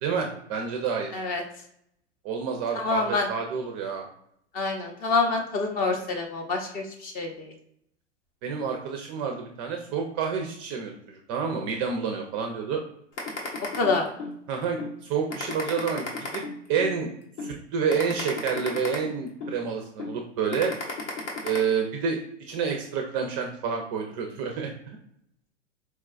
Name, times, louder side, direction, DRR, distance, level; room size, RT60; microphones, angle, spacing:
voice 1, 0.0-1.1 2.2-4.1 8.4-12.8 14.5-14.8 15.1-16.1 16.3-16.4 16.7-17.1 17.4-20.7 21.4-22.2 22.5-24.7, right 6 dB, 30° right, 2 dB, 0.4 m, -28 dB
voice 2, 2.7-3.3 4.5-7.5 13.8-14.1, left 3 dB, 25° left, 2 dB, 0.6 m, -27 dB
sound 1, 13.2-14.3 14.8-14.9 15.3-16.9 17.4-17.5 17.9-19.5 20.0-20.1 20.5-21.6, left 3 dB, 80° left, 1.1 m, -33 dB
4.4 x 2.2 x 2.4 m, 0.71 s
hypercardioid pair, 110°, 35 cm